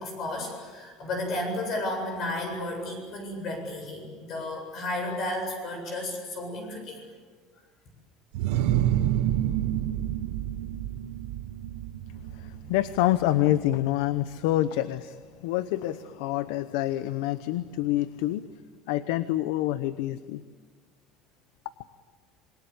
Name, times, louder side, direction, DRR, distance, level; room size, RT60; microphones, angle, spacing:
voice 1, 0.0-7.0, left 1 dB, 40° left, 4 dB, 7.8 m, -33 dB
sound 1, 8.3-13.9, right 12 dB, 75° right, 1.4 m, -29 dB
voice 2, 12.3-18.5 18.9-20.4, left 14 dB, 80° left, 13 dB, 0.9 m, -27 dB
27.0 x 22.5 x 8.6 m, 1.5 s
cardioid pair, 170°, 0 cm